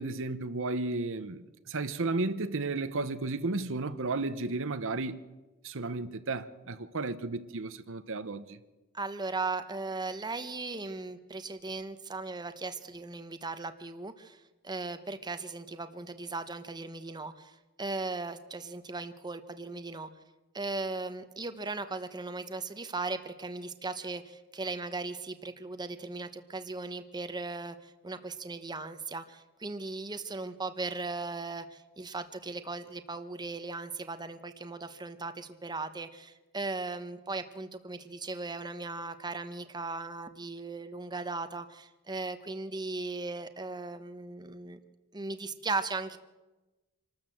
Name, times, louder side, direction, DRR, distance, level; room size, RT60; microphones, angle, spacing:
voice 1, 0.0-5.2 5.6-8.6, right 3 dB, 65° right, 1.0 m, -33 dB
voice 2, 8.9-20.1 20.5-44.8 45.1-46.2, right 3 dB, 20° right, 1.0 m, -37 dB
26.0 x 13.0 x 7.7 m
head